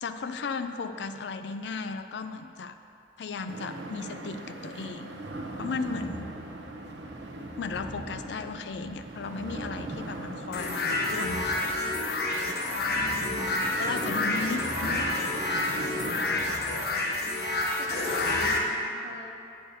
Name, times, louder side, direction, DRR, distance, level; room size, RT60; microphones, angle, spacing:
voice 1, 0.0-2.8 3.2-5.2 5.6-6.3 7.6-11.6 13.8-15.0, left 4 dB, 75° left, 9 dB, 0.4 m, -35 dB
sound 1, 3.5-16.5, right 2 dB, 80° right, 0.8 m, -40 dB
sound 2, 5.8-18.6, equal, 20° right, 0.8 m, -45 dB
sound 3, 10.5-18.6, left 2 dB, 60° left, 0.9 m, -29 dB
voice 2, 12.9-13.6 14.1-14.5 17.8-19.3, right 1 dB, 45° right, -1 dB, 1.0 m, -43 dB
8.5 x 4.3 x 6.6 m, 2.7 s
head